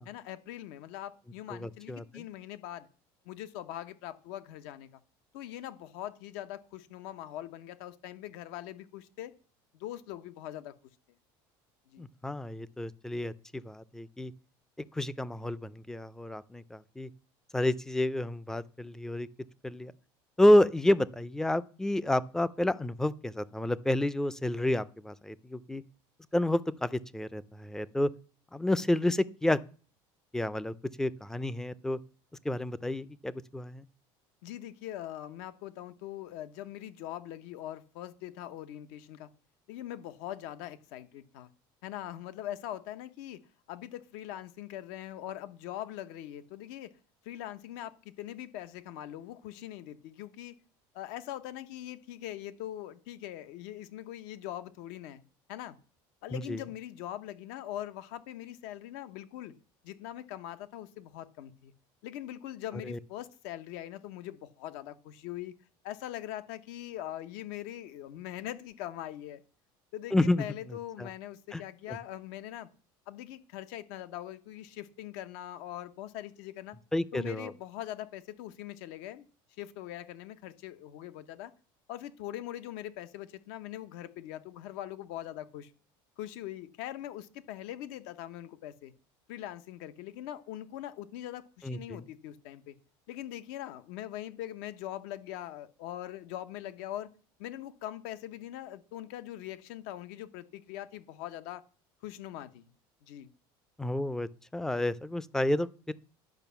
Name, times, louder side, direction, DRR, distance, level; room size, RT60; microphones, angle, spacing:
voice 1, 0.0-2.9 3.2-4.9 5.3-9.3 9.7-10.7 11.9-12.1 34.4-39.3 39.7-41.5 41.8-43.4 43.7-46.9 47.2-50.5 50.9-55.2 55.5-55.8 56.2-59.5 59.8-61.7 62.0-65.5 65.8-69.4 69.9-72.7 73.1-76.8 77.1-79.2 79.6-81.5 81.9-85.7 86.2-88.9 89.3-92.7 93.1-97.1 97.4-101.6 102.0-102.7 103.0-103.3, left 12 dB, 80° left, 1.0 m, -42 dB
voice 2, 1.5-2.2 12.0-14.3 14.9-17.1 17.5-19.3 19.6-19.9 20.4-25.8 26.3-28.1 28.5-29.6 30.3-32.0 32.4-33.8 56.3-56.6 62.9-63.0 70.1-70.5 71.0-71.1 71.5-71.6 71.9-72.0 76.9-77.5 91.6-92.0 103.8-105.9, left 1 dB, 5° left, 0.4 m, -29 dB
11.0 x 5.3 x 6.9 m
cardioid pair, 145°, 11 cm